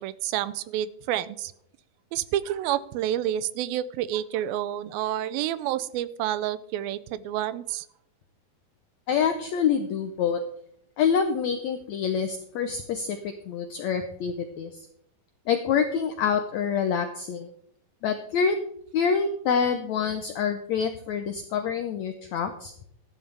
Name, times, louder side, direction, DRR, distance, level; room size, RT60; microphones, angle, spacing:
voice 1, 0.0-1.5 2.1-7.9, right 12 dB, 85° right, 15 dB, 2.4 m, -29 dB
voice 2, 9.1-10.4 11.0-14.7 15.5-17.5 18.0-18.6 18.9-22.7, left 6 dB, 85° left, 7 dB, 1.6 m, -26 dB
14.0 x 11.5 x 3.4 m, 0.71 s
omnidirectional pair, 4.2 m